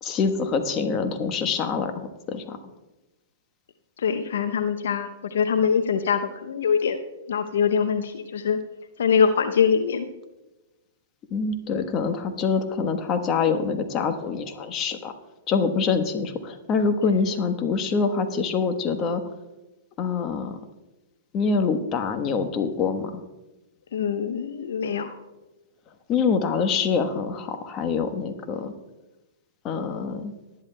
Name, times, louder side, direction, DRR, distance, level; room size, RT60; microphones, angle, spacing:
voice 1, 0.0-2.6 11.3-15.1 15.5-19.2 20.0-20.6 21.3-23.2 26.1-28.7 29.6-30.3, left 5 dB, 30° left, 7 dB, 1.2 m, -25 dB
voice 2, 4.0-7.0 7.3-8.6 9.0-10.1 23.9-25.2, left 6 dB, 70° left, 8 dB, 0.7 m, -23 dB
19.0 x 11.0 x 2.3 m, 1.0 s
hypercardioid pair, 115°, 0 cm